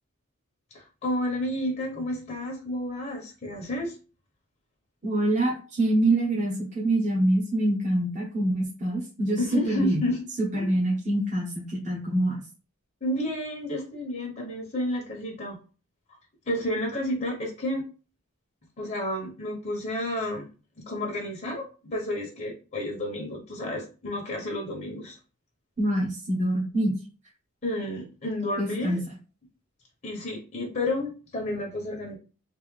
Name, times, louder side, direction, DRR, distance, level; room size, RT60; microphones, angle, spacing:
voice 1, 0.7-4.0 9.4-10.2 10.5-10.8 13.0-15.6 16.5-17.8 18.8-20.5 20.9-25.2 27.6-29.0 30.0-32.2, left 1 dB, 40° left, -2 dB, 1.0 m, -31 dB
voice 2, 5.0-10.0 10.5-12.4 25.8-26.9 28.6-29.0, right 1 dB, 35° right, -5 dB, 1.0 m, -25 dB
3.5 x 2.9 x 3.3 m, 0.35 s
head